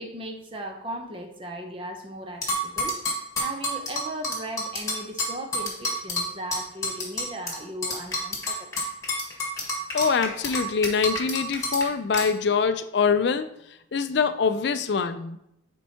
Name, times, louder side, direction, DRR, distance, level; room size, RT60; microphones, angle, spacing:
voice 1, 0.0-8.7, right 1 dB, 25° right, 3 dB, 0.7 m, -37 dB
sound 1, 2.4-7.6 7.8-11.8 12.1-12.3, left 1 dB, 15° left, 1.6 m, -28 dB
voice 2, 9.9-13.5 13.9-15.4, left 5 dB, 55° left, 9 dB, 0.4 m, -24 dB
10.5 x 4.5 x 2.8 m, 0.80 s
head